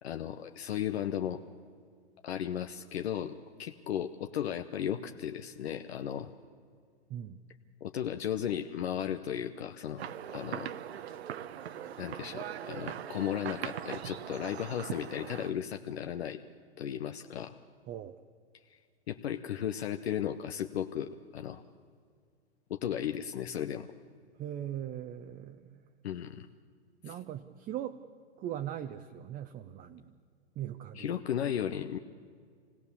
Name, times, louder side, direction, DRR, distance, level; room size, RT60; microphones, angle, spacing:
voice 1, 0.0-1.4 2.2-3.3 3.6-6.3 7.8-10.0 10.3-10.7 12.0-16.4 16.8-17.5 19.1-21.6 22.7-23.9 26.0-26.5 27.1-27.2 31.0-32.0, left 10 dB, 70° left, 6 dB, 1.0 m, -35 dB
voice 2, 7.1-7.4 17.9-18.2 24.4-25.8 27.0-28.0 28.4-30.1 30.6-31.1, right 11 dB, 25° right, 6 dB, 0.8 m, -40 dB
sound 1, 10.0-15.5, right 10 dB, 70° right, 1.0 m, -40 dB
25.5 x 18.0 x 7.0 m, 2.1 s
hypercardioid pair, 115°, 33 cm